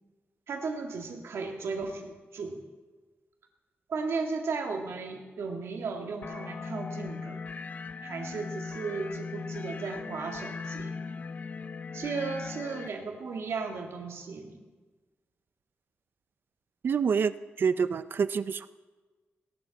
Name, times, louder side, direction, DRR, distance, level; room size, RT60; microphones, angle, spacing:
voice 1, 0.5-2.6 3.9-7.5 8.0-11.0 11.9-14.7, right 4 dB, 75° right, 2 dB, 1.9 m, -35 dB
sound 1, 6.2-12.9, left 5 dB, 35° left, 0.4 m, -39 dB
voice 2, 16.8-18.7, right 6 dB, 55° right, 14 dB, 0.5 m, -27 dB
18.0 x 12.0 x 4.1 m, 1.3 s
wide cardioid pair, 170°, 4 cm